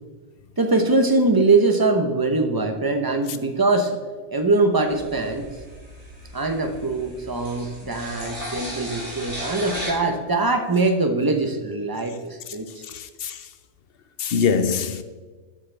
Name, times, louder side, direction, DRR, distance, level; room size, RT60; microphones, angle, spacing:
voice 1, 0.6-4.0 4.3-5.5 6.3-12.8, right 3 dB, 20° right, 0.8 m, -22 dB
sound 1, 4.9-9.9, equal, 65° right, 3.4 m, -36 dB
voice 2, 12.9-13.3 14.2-15.0, left 6 dB, 55° left, 0.8 m, -23 dB
12.5 x 7.9 x 3.4 m
omnidirectional pair, 1.3 m